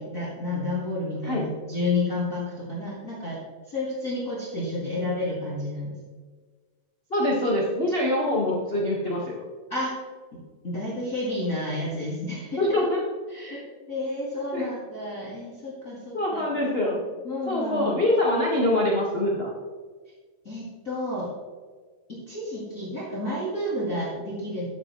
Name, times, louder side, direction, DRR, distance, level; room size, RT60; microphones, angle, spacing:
voice 1, 0.0-3.4 3.7-6.0 9.7-9.9 10.6-12.6 13.3-16.4 17.2-18.0 20.4-21.3 22.1-24.7, left 2 dB, 30° left, -7 dB, 1.9 m, -30 dB
voice 2, 7.1-9.3 12.6-13.0 14.5-14.7 16.1-17.0 17.5-19.5, left 1 dB, 65° left, -4 dB, 0.5 m, -24 dB
11.0 x 8.5 x 3.1 m, 1.4 s
omnidirectional pair, 3.7 m